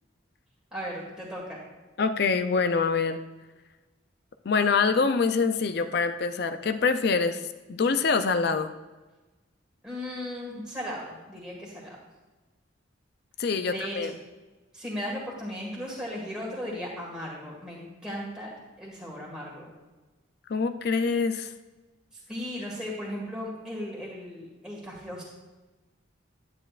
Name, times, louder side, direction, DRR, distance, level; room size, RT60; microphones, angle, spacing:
voice 1, 0.7-1.6 9.8-12.0 13.6-14.1 14.7-19.7 22.3-25.2, equal, 5° right, -5 dB, 1.7 m, -36 dB
voice 2, 2.0-3.2 4.4-7.4 7.7-8.7 13.4-14.1 20.5-21.5, left 4 dB, 55° left, 9 dB, 0.4 m, -25 dB
9.9 x 9.6 x 2.4 m, 1.2 s
head